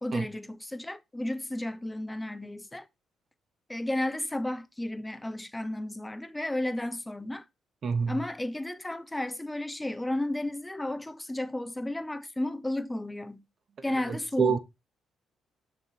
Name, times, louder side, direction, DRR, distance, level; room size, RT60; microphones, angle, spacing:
voice 1, 0.0-2.9 3.7-7.4 8.1-13.4 13.8-14.6, left 1 dB, 10° left, 0.7 m, -33 dB
voice 2, 7.8-8.2 14.0-14.6, right 6 dB, 50° right, 1.0 m, -27 dB
6.4 x 3.3 x 5.4 m
cardioid pair, 90°, 0 cm